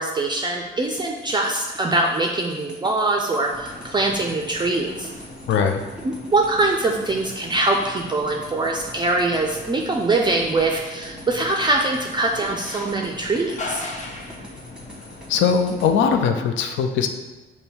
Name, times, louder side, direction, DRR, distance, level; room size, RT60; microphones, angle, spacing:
voice 1, 0.0-5.1 6.0-13.8, right 2 dB, 20° right, 1 dB, 0.4 m, -23 dB
sound 1, 1.0-15.9, equal, 5° right, 0.9 m, -44 dB
sound 2, 3.5-16.2, left 2 dB, 35° left, 0.7 m, -39 dB
voice 2, 5.5-5.8 15.3-17.1, left 6 dB, 70° left, 6 dB, 0.4 m, -20 dB
5.2 x 2.2 x 4.3 m, 1.2 s
cardioid pair, 90°, 20 cm